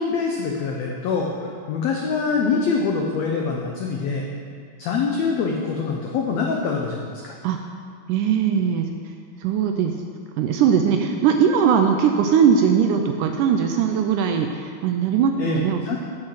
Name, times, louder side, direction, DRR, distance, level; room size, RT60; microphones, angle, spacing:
voice 1, 0.0-4.3 4.8-7.4 15.4-16.0, left 5 dB, 85° left, 0 dB, 1.5 m, -24 dB
voice 2, 8.1-8.9 9.4-10.0 10.4-16.0, right 7 dB, 80° right, 4 dB, 1.9 m, -20 dB
8.8 x 5.8 x 7.6 m, 2.2 s
omnidirectional pair, 4.0 m